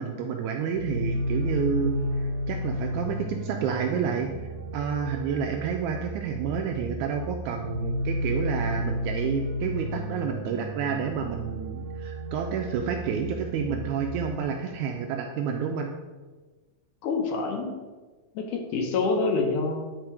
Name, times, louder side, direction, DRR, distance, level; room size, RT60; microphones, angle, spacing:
voice 1, 0.0-15.9, right 6 dB, 80° right, 3 dB, 1.8 m, -30 dB
sound 1, 0.7-14.4, equal, 65° right, 2.7 m, -33 dB
voice 2, 17.0-17.8 18.3-20.0, left 3 dB, 75° left, 3 dB, 2.2 m, -27 dB
10.0 x 4.2 x 4.6 m, 1.3 s
omnidirectional pair, 3.9 m